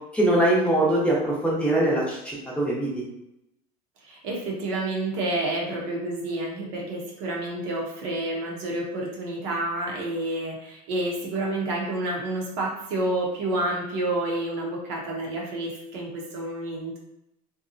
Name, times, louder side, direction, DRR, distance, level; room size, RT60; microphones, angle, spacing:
voice 1, 0.1-2.9, right 1 dB, 5° left, -5 dB, 0.9 m, -22 dB
voice 2, 4.0-17.0, right 1 dB, 75° right, -2 dB, 0.8 m, -29 dB
2.7 x 2.2 x 2.6 m, 0.86 s
supercardioid pair, 105°, 19 cm